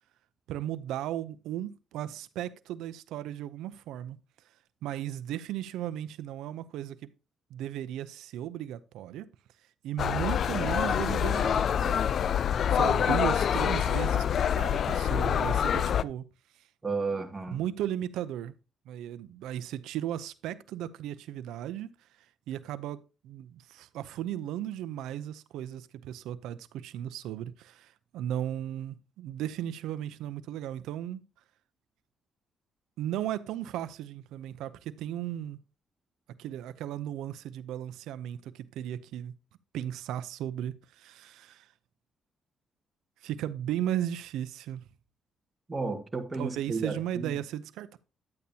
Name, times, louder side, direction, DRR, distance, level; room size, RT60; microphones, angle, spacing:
voice 1, 0.5-4.2 4.8-7.1 7.5-9.3 9.8-12.3 12.6-16.2 17.5-18.5 18.9-21.9 22.5-31.2 33.0-35.6 36.4-39.3 39.7-41.7 43.2-44.8 46.3-48.0, right 11 dB, 90° right, 0.6 m, -36 dB
sound 1, 10.0-16.0, left 8 dB, 60° left, 0.3 m, -26 dB
voice 2, 16.8-17.6 45.7-47.3, right 4 dB, 20° right, 1.7 m, -33 dB
10.5 x 8.5 x 2.8 m
cardioid pair, 90°, 0 cm